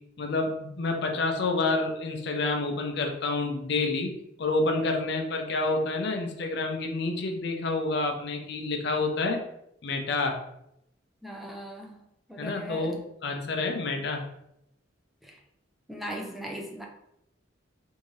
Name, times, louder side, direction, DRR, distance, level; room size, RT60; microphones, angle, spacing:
voice 1, 0.2-4.1 4.4-9.4 9.8-10.4 12.4-14.3, left 3 dB, 65° left, 3 dB, 0.6 m, -28 dB
voice 2, 11.2-12.0 12.3-13.0 15.2-15.4 15.9-16.9, equal, ahead, 0 dB, 0.4 m, -38 dB
3.6 x 2.7 x 3.1 m, 0.78 s
head